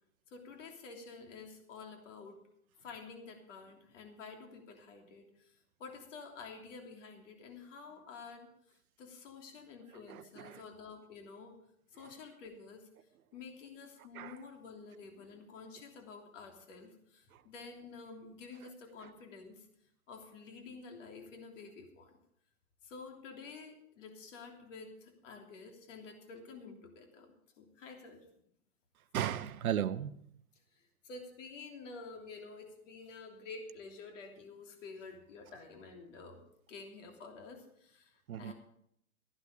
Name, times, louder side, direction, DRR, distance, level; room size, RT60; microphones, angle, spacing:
voice 1, 0.3-2.4 2.8-5.5 5.8-8.5 9.0-11.6 11.9-12.9 13.3-19.7 20.1-22.1 22.8-27.3 27.6-28.2 31.0-36.4 36.7-38.5, left 4 dB, 55° left, 3.2 m, -50 dB
voice 2, 10.1-10.6 14.1-14.4 29.1-30.2 38.3-38.5, right 10 dB, 70° right, 0.9 m, -36 dB
14.0 x 11.0 x 5.0 m
hypercardioid pair, 135°, 44 cm